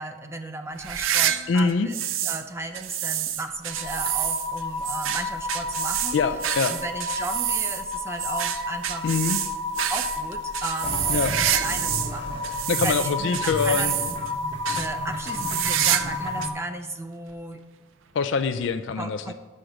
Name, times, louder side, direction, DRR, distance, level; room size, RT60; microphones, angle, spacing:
voice 1, 0.0-6.2 6.7-9.1 9.9-13.9 14.8-17.6 19.0-19.3, right 2 dB, 15° right, 6 dB, 0.4 m, -35 dB
sound 1, 0.8-2.4 2.7-12.1 12.4-14.3 14.6-14.9 15.3-16.2 16.4-16.5 17.3-17.4 18.6-18.7, right 11 dB, 85° right, 0.5 m, -28 dB
voice 2, 1.5-1.9 6.1-6.7 9.0-9.4 11.1-11.4 12.7-13.9 18.1-19.3, left 5 dB, 65° left, 8 dB, 0.4 m, -24 dB
sound 2, 3.7-16.5, left 2 dB, 70° right, 0.9 m, -32 dB
sound 3, 10.8-16.6, left 1 dB, 25° left, 0.8 m, -35 dB
6.4 x 5.9 x 6.3 m, 1.4 s
head